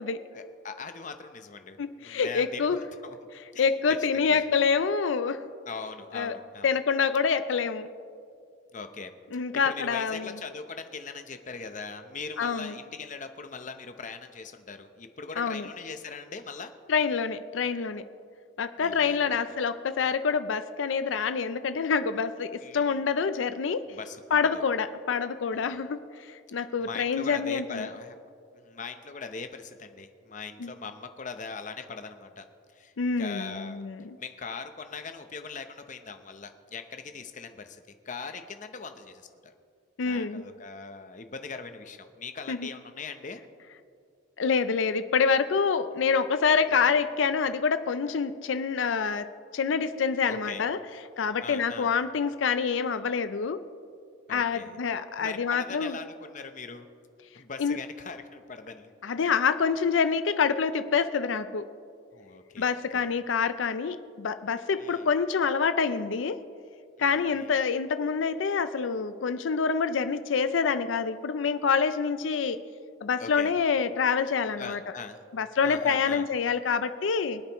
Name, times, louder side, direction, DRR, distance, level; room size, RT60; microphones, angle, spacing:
voice 1, 0.3-2.7 3.0-3.2 3.5-3.7 4.3-4.5 5.7-6.7 8.7-9.2 9.6-16.7 18.8-19.5 22.6-22.9 23.9-24.6 25.5-25.8 26.6-28.1 28.5-32.4 32.7-33.9 34.2-39.5 40.0-43.4 46.7-46.9 50.3-50.6 51.4-51.9 54.3-54.8 55.2-56.9 57.3-58.9 62.1-63.1 64.8-65.1 67.0-67.5 73.2-73.5 74.6-75.2 75.6-76.2, left 5 dB, 40° left, 8 dB, 0.8 m, -41 dB
voice 2, 1.8-2.8 3.6-5.4 6.1-6.4 6.6-7.9 9.3-10.3 12.4-12.7 15.4-15.7 16.9-18.0 18.6-23.8 24.3-26.0 26.3-27.9 30.6-30.7 33.0-34.2 40.0-40.4 42.5-42.7 44.4-50.8 51.2-53.6 54.3-56.0 57.6-57.8 59.0-61.6 62.6-66.4 67.0-72.6 73.0-74.8 75.3-77.4, left 5 dB, 85° left, 11 dB, 0.5 m, -26 dB
24.5 x 8.8 x 3.0 m, 2.3 s
head